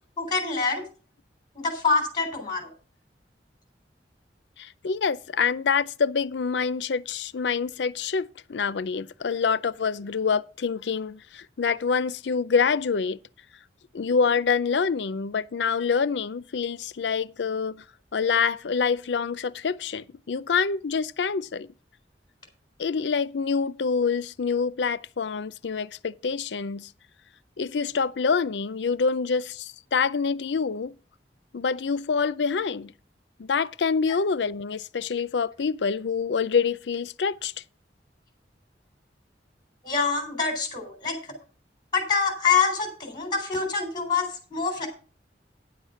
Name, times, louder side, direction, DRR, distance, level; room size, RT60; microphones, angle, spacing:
voice 1, 0.2-0.8 1.6-2.7 39.8-41.1 41.9-44.9, left 5 dB, 25° left, 3.7 m, -25 dB
voice 2, 4.6-13.2 13.9-17.8 18.1-21.7 22.8-26.9 27.6-30.9 31.5-32.9 33.4-37.5, left 5 dB, 80° left, 0.5 m, -26 dB
9.8 x 7.4 x 5.6 m
head